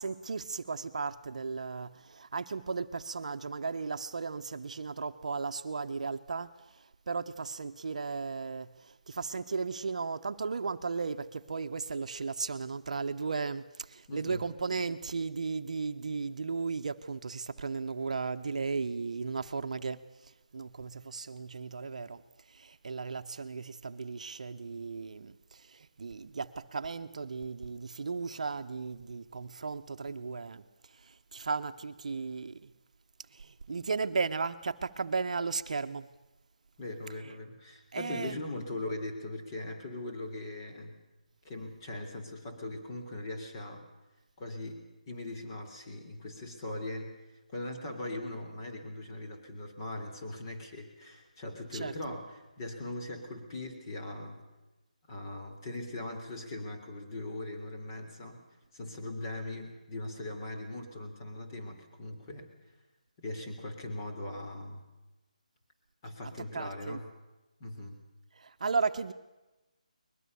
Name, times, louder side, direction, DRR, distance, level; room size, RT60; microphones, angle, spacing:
voice 1, 0.0-22.2 22.5-32.7 33.3-36.1 37.9-38.4 51.7-51.9 66.5-67.0 68.4-69.1, right 4 dB, 60° right, 10 dB, 1.0 m, -35 dB
voice 2, 14.1-14.5 36.8-41.0 41.4-43.9 44.4-47.2 47.5-54.5 55.1-58.4 58.7-62.5 63.2-64.8 66.0-67.1 67.6-68.0, left 1 dB, 30° left, 3 dB, 3.8 m, -40 dB
21.5 x 21.5 x 6.9 m, 1.1 s
figure-of-eight pair, 160°, 4 cm